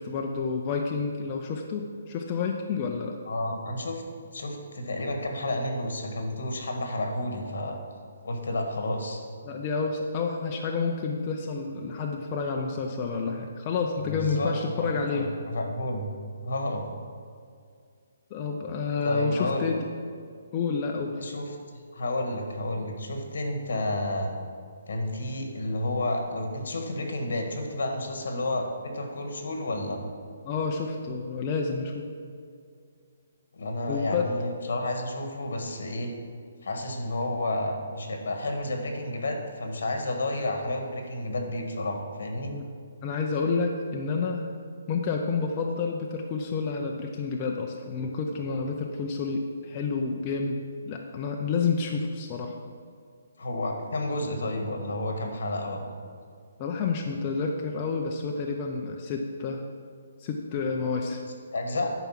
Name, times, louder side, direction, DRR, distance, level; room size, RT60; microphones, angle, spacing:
voice 1, 0.0-3.2 9.4-15.3 18.3-19.8 20.5-21.2 30.4-32.0 33.9-34.3 42.5-42.6 43.0-44.5 44.9-52.5 56.6-59.6 60.2-61.2, left 4 dB, 20° left, 1 dB, 0.4 m, -29 dB
voice 2, 3.2-4.0 4.3-7.8 8.2-9.2 14.0-16.1 16.4-16.9 19.0-19.7 21.2-21.4 21.7-24.3 24.9-30.0 33.5-36.1 36.6-42.5 53.4-55.9 61.5-61.9, left 1 dB, 70° left, 3 dB, 1.6 m, -31 dB
10.5 x 4.6 x 5.8 m, 2.2 s
hypercardioid pair, 180°, 0 cm